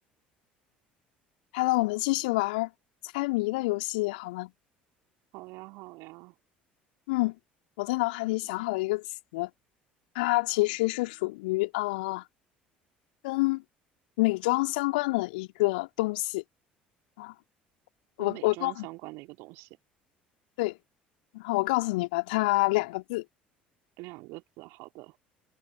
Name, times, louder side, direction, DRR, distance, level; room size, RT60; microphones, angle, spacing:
voice 1, 1.5-2.7 3.0-4.5 7.1-7.3 7.8-9.0 9.3-9.5 10.1-12.2 13.2-13.6 14.2-16.4 17.2-17.3 18.2-18.9 20.6-20.8 21.3-23.2, left 23 dB, 65° left, 3.1 m, -27 dB
voice 2, 5.3-6.3 18.2-19.7 24.0-25.2, right 24 dB, 60° right, 3.5 m, -44 dB
figure-of-eight pair, 60°, 5 cm